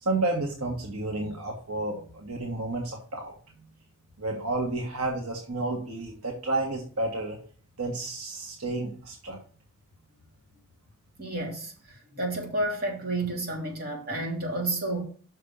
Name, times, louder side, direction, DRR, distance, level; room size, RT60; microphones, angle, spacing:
voice 1, 0.0-3.3 4.2-7.4 7.8-9.4, right 2 dB, 80° right, 1 dB, 1.6 m, -31 dB
voice 2, 11.2-11.7 12.1-15.0, right 2 dB, 45° right, -1 dB, 3.0 m, -30 dB
6.5 x 5.1 x 6.9 m, 0.43 s
head